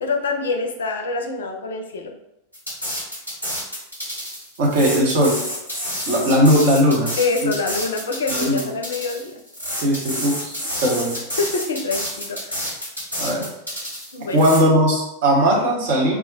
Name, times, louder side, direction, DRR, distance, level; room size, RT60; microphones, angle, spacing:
voice 1, 0.0-2.1 7.2-9.4 10.6-10.7 11.4-12.7 14.1-14.4, left 3 dB, 65° left, 4 dB, 0.4 m, -26 dB
sound 1, 2.5-14.6, equal, 90° right, 1.3 m, -29 dB
voice 2, 4.6-5.4 6.1-7.5 8.3-8.7 9.8-11.2 13.2-13.5 14.3-16.2, equal, 50° right, -2 dB, 0.8 m, -18 dB
2.3 x 2.1 x 3.8 m, 0.85 s
figure-of-eight pair, 90°, 0 cm